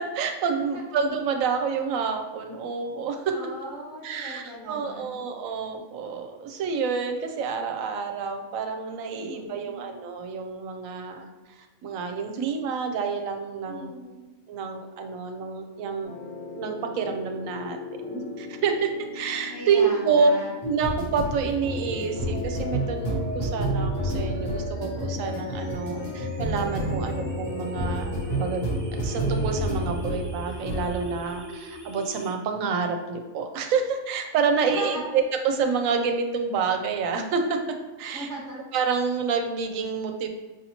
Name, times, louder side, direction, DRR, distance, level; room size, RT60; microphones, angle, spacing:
voice 1, 0.0-3.4 4.0-11.3 11.8-13.9 14.5-16.1 16.5-17.8 18.0-20.3 20.6-37.6 38.0-38.3 38.7-40.3, right 5 dB, 80° right, 5 dB, 1.0 m, -28 dB
voice 2, 3.3-5.1 9.2-9.8 13.6-14.2 19.5-20.5 34.6-35.1 38.1-38.6, equal, 5° left, -8 dB, 1.4 m, -38 dB
sound 1, 16.0-30.3 30.6-30.9, equal, 50° left, 1.1 m, -31 dB
sound 2, 22.3-32.3, equal, 25° right, 0.4 m, -40 dB
sound 3, 25.2-31.2, left 1 dB, 75° left, 1.7 m, -48 dB
5.0 x 2.8 x 2.8 m, 1.3 s
omnidirectional pair, 1.4 m